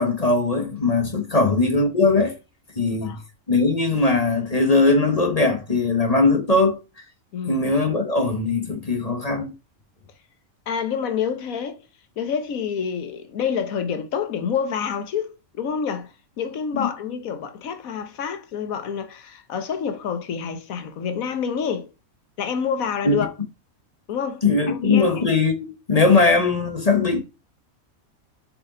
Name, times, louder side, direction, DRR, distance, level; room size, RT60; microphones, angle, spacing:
voice 1, 0.0-2.3 2.7-3.2 3.5-6.8 7.5-9.5 16.7-16.9 23.0-23.2 24.4-27.2, left 3 dB, 30° left, 1.1 m, -20 dB
voice 2, 7.3-7.6 10.7-11.8 12.2-21.9 22.4-23.3 24.1-25.2, left 7 dB, 75° left, 1.4 m, -28 dB
6.9 x 5.1 x 3.8 m
omnidirectional pair, 1.5 m